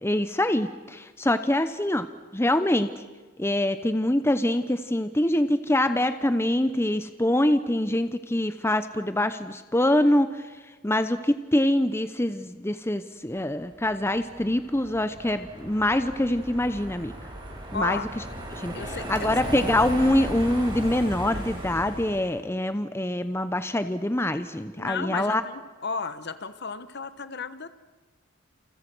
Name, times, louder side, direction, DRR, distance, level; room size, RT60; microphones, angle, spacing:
voice 1, 0.0-2.1 2.3-2.9 3.4-10.3 10.8-17.1 17.7-18.2 18.5-25.4, left 1 dB, 10° left, 10 dB, 0.8 m, -24 dB
Car passing by, 13.8-22.4, right 1 dB, 20° right, 5.6 m, -36 dB
voice 2, 17.7-18.1 18.7-19.3 24.8-27.7, left 5 dB, 50° left, 12 dB, 1.2 m, -33 dB
29.0 x 29.0 x 6.2 m, 1.3 s
head